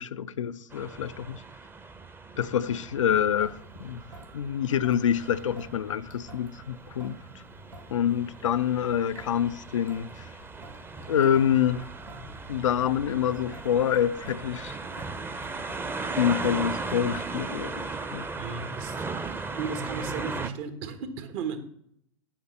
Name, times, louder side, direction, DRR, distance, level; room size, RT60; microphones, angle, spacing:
voice 1, 0.0-1.4 2.4-4.0 4.3-7.2 7.9-10.2 11.1-11.8 12.5-14.8 16.1-18.2, left 9 dB, 75° left, 0.4 m, -26 dB
sound 1, 0.7-20.5, right 3 dB, 15° right, 0.8 m, -38 dB
Traffic noise roadway noise / Drip / Trickle dribble, 3.3-17.3, right 1 dB, 85° right, 2.0 m, -49 dB
voice 2, 18.4-21.6, right 5 dB, 55° right, 1.5 m, -35 dB
8.7 x 5.2 x 7.1 m
figure-of-eight pair, 90°, 16 cm